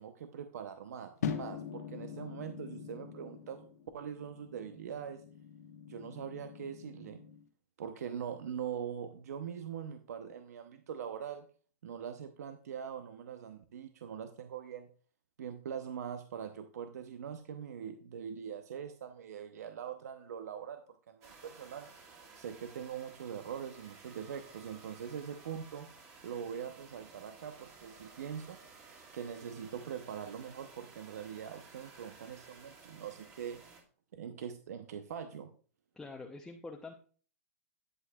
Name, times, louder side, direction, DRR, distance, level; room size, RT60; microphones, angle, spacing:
voice 1, 0.0-3.7 3.9-5.2 5.9-7.2 7.8-11.5 11.8-14.9 15.4-20.8 21.1-21.9 22.4-25.9 26.2-28.6 29.1-33.6 34.1-35.5, right 8 dB, 80° right, 8 dB, 0.8 m, -42 dB
sound 1, 1.2-7.4, left 7 dB, 90° left, 1.4 m, -43 dB
sound 2, 21.2-33.8, right 4 dB, 35° right, 2.1 m, -56 dB
voice 2, 36.0-36.9, left 3 dB, 5° left, 1 dB, 0.7 m, -45 dB
11.0 x 7.7 x 2.3 m, 0.42 s
hypercardioid pair, 140°, 8 cm